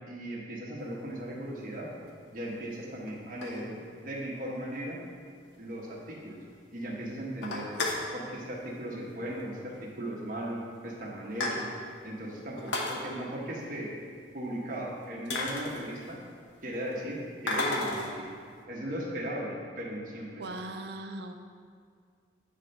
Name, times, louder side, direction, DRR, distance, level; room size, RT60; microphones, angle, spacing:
voice 1, 0.1-1.9 2.3-5.0 5.6-6.4 6.7-7.7 8.1-11.7 12.0-13.9 14.3-16.2 16.6-18.2 18.7-20.6, right 1 dB, 45° right, -4 dB, 1.2 m, -37 dB
sound 1, 1.2-1.3 2.1-2.2 3.1-4.1 4.5-4.6 4.8-4.9 5.3-5.4 5.7-5.8 6.1-6.6 6.9-7.0 7.3-8.1 9.2-9.4 9.7-9.8 10.6-10.7 11.0-12.0 12.5-13.0 14.7-14.8 15.3-16.3 17.5-18.2, left 2 dB, 85° left, 0.9 m, -33 dB
voice 2, 20.4-21.3, right 2 dB, 60° right, 6 dB, 0.5 m, -39 dB
9.3 x 3.4 x 5.4 m, 2.1 s
head